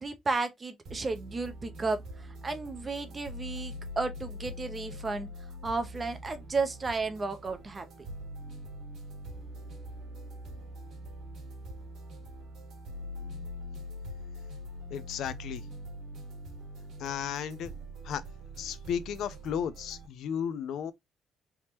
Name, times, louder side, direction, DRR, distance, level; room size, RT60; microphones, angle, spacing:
voice 1, 0.0-5.3 5.6-7.9, right 3 dB, 20° right, 0.6 m, -33 dB
sound 1, 0.8-20.1, equal, 55° right, 1.5 m, -43 dB
voice 2, 14.9-15.7 17.0-17.7 18.0-18.2 18.6-20.9, left 8 dB, 65° left, 0.4 m, -34 dB
3.4 x 3.1 x 2.8 m
cardioid pair, 155°, 0 cm